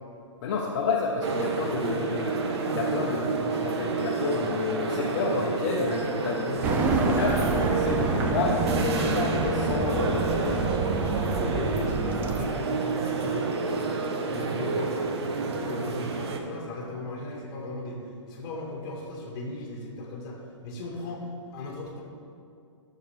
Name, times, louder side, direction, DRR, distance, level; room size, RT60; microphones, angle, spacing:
voice 1, 0.4-10.6, left 4 dB, 40° left, -3 dB, 0.9 m, -30 dB
sound 1, 1.2-16.4, right 3 dB, 55° right, 0.9 m, -29 dB
sound 2, 6.6-12.4, right 4 dB, 10° right, 0.3 m, -27 dB
voice 2, 11.4-13.5 14.3-15.0 15.6-18.0 18.3-20.4 20.6-22.0, left 2 dB, 25° left, -2 dB, 1.7 m, -36 dB
12.5 x 6.7 x 3.3 m, 2.5 s
hypercardioid pair, 150°, 16 cm